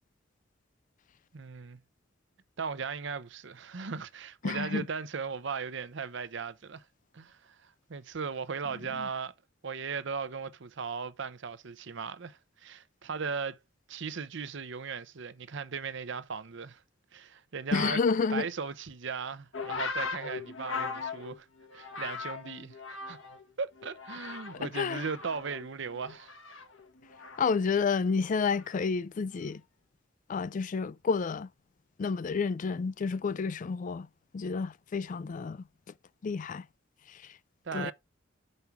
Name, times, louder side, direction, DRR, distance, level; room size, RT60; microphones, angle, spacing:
voice 1, 1.3-1.8 2.6-6.8 7.1-9.3 9.6-13.6 13.9-16.8 17.1-18.0 18.3-21.5 21.7-23.2 23.6-26.4 37.6-37.9, right 5 dB, 65° right, 0.7 m, -37 dB
voice 2, 4.4-4.8 9.0-9.1 17.7-18.5 24.6-25.0 27.4-29.6 30.3-31.5 32.0-34.1 34.3-35.6 36.2-36.6 37.1-37.2 37.7-37.9, left 5 dB, 40° left, 0.3 m, -30 dB
sound 1, 19.5-23.5 23.8-24.7 25.0-27.6 28.5-28.8, left 4 dB, 90° left, 1.4 m, -39 dB
5.4 x 4.7 x 5.7 m
head